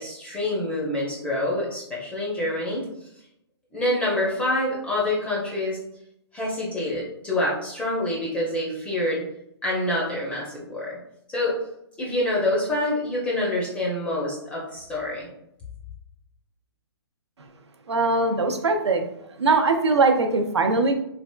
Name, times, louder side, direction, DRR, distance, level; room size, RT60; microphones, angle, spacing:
voice 1, 0.0-2.9 3.7-5.8 6.3-9.2 9.6-11.0 11.3-11.6 12.0-15.3, left 1 dB, 10° left, -5 dB, 0.5 m, -26 dB
voice 2, 17.9-19.0 19.4-20.9, right 3 dB, 90° right, 6 dB, 0.5 m, -21 dB
3.3 x 2.4 x 2.2 m, 0.77 s
hypercardioid pair, 140°, 14 cm